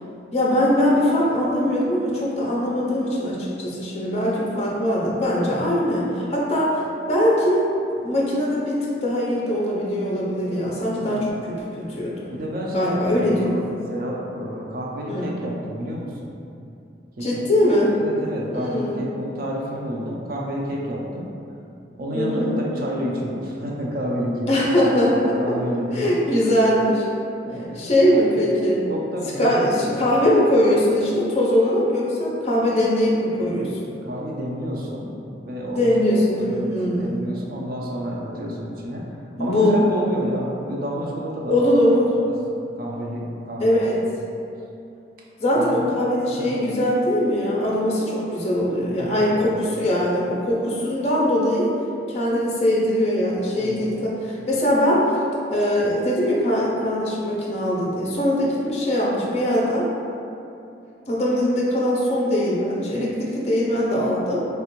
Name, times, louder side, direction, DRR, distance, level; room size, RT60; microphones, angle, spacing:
voice 1, 0.3-12.3 12.7-13.6 15.1-15.4 17.2-18.0 18.5-19.0 22.1-22.5 24.5-25.6 25.9-27.1 27.8-28.9 29.4-33.9 35.8-37.3 39.4-39.8 41.5-42.2 43.6-44.0 45.4-51.7 52.1-55.2 55.5-59.9 61.1-64.5, equal, 35° left, -5 dB, 0.5 m, -21 dB
voice 2, 11.0-11.3 12.3-13.6 13.9-16.4 17.2-17.4 17.9-21.3 22.0-24.7 25.4-26.1 27.4-28.4 28.9-30.1 34.0-35.1 35.4-35.9 36.4-41.6 42.2-42.3 42.8-43.8 45.5-45.9 46.3-46.6 49.0-49.5 53.6-53.8, equal, 50° right, -3 dB, 0.4 m, -30 dB
3.2 x 2.4 x 3.0 m, 2.7 s
head